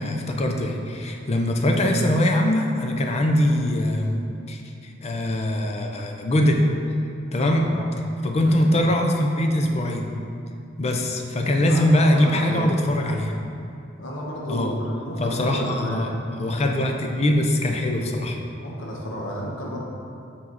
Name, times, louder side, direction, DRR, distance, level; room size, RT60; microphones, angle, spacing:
voice 1, 0.0-4.2 4.5-6.6 7.3-7.7 8.2-10.1 10.8-13.3 14.5-14.7 15.2-16.1 16.4-18.4, left 1 dB, 30° left, 3 dB, 0.5 m, -22 dB
voice 2, 7.5-7.8 8.5-8.7 11.7-11.8 12.1-12.7 14.0-16.6 18.6-19.8, equal, 70° left, -4 dB, 1.1 m, -32 dB
5.6 x 5.1 x 4.0 m, 2.5 s
head